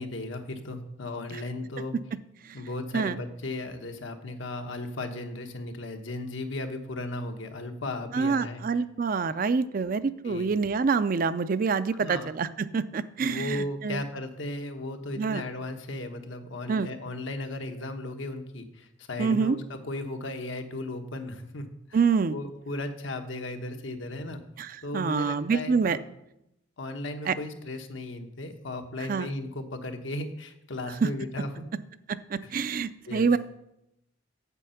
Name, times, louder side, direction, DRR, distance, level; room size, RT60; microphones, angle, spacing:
voice 1, 0.0-2.0 2.5-8.8 10.2-10.5 12.0-12.3 13.2-22.0 22.3-24.4 24.8-26.0 26.8-31.7 32.4-32.5 33.1-33.3, left 2 dB, 80° left, 5 dB, 1.1 m, -36 dB
voice 2, 8.1-14.0 15.2-15.4 16.7-16.9 19.2-19.6 21.9-22.3 24.6-26.0 27.3-27.4 29.1-29.3 31.0-31.1 32.1-33.4, right 5 dB, 45° right, 14 dB, 0.4 m, -26 dB
8.2 x 7.7 x 5.7 m, 0.83 s
head